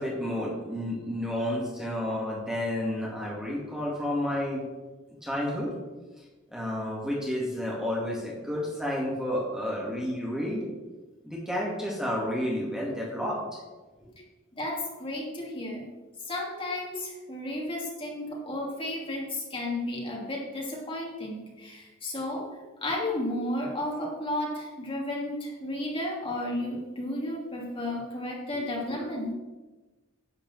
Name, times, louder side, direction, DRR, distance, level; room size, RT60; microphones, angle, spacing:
voice 1, 0.0-4.6 5.2-5.7 6.5-10.7 11.2-13.4 14.1-14.2, left 1 dB, 5° right, -5 dB, 2.2 m, -31 dB
voice 2, 14.6-15.9 16.3-22.4 22.8-29.3, left 1 dB, 25° left, -3 dB, 2.9 m, -33 dB
10.5 x 5.3 x 7.8 m, 1.2 s
head